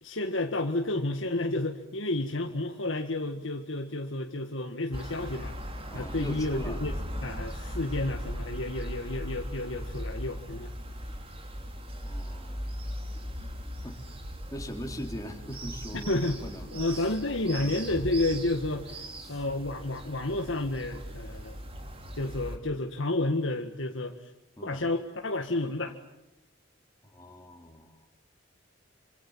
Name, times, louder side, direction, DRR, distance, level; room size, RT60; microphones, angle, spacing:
voice 1, 0.0-5.6 5.9-6.9 7.2-10.7 15.9-16.4 16.7-21.6 22.1-24.3 24.6-26.0, left 2 dB, 80° left, 3 dB, 1.9 m, -31 dB
sound 1, 4.9-22.6, equal, 30° right, 3.6 m, -38 dB
voice 2, 5.9-6.9 12.0-12.7 13.8-14.0 14.5-16.2 16.4-17.0 17.6-17.8 19.2-19.4 24.6-24.9 27.0-28.0, equal, 15° left, 3 dB, 3.8 m, -41 dB
28.5 x 25.5 x 7.5 m, 0.92 s
head